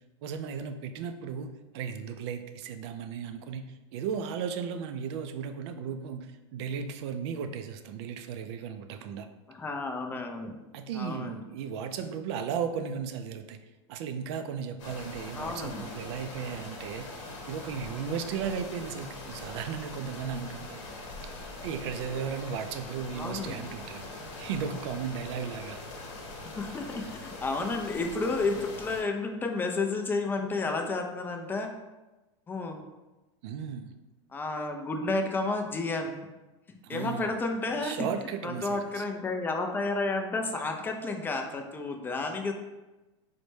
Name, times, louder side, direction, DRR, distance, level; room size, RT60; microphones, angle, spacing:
voice 1, 0.2-3.7 3.9-9.3 10.7-13.6 13.9-20.8 21.6-24.0 24.4-25.8 33.4-33.9 36.8-37.3 37.8-39.0, right 7 dB, 60° right, 8 dB, 0.4 m, -35 dB
voice 2, 9.5-10.5 10.9-11.4 15.3-15.9 23.1-23.6 26.4-31.7 32.5-32.8 34.3-36.2 36.9-38.0 38.4-42.5, left 3 dB, 15° left, 4 dB, 0.4 m, -31 dB
sound 1, 14.8-29.0, left 2 dB, 75° left, 1.0 m, -42 dB
4.1 x 2.1 x 3.1 m, 1.1 s
supercardioid pair, 125°, 15 cm